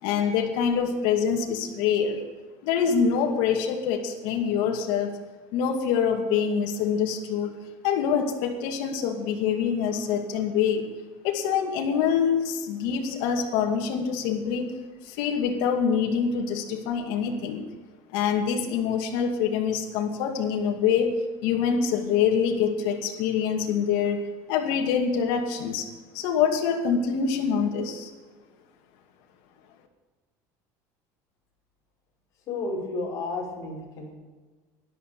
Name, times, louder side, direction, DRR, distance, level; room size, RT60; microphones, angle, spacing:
voice 1, 0.0-2.2 2.6-5.1 5.5-7.6 7.8-10.9 11.2-14.8 15.0-17.6 18.1-25.9 26.1-28.1, left 7 dB, 70° left, 3 dB, 2.3 m, -25 dB
voice 2, 32.5-34.2, left 3 dB, 40° left, -2 dB, 5.4 m, -32 dB
12.5 x 11.5 x 7.0 m, 1.3 s
cardioid pair, 155°, 9 cm